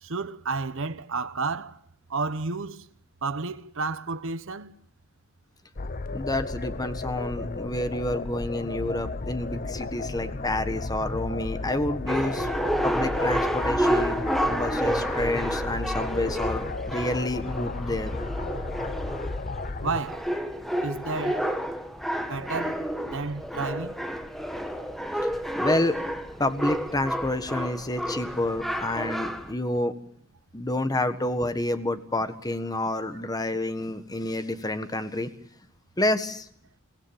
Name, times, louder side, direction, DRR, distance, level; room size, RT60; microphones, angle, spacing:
voice 1, 0.0-1.8 2.1-2.9 3.2-4.7 19.8-20.3 20.8-21.5 22.2-23.9, right 4 dB, 65° right, 1.1 m, -31 dB
sound 1, 5.8-20.0, left 3 dB, 45° left, 0.9 m, -34 dB
voice 2, 6.1-12.5 12.8-14.2 14.5-18.1 25.6-26.0 26.4-29.9 30.5-35.3 36.0-36.4, left 1 dB, 20° left, 1.5 m, -29 dB
sound 2, 12.1-29.5, equal, ahead, 1.8 m, -30 dB
24.0 x 17.0 x 9.0 m
head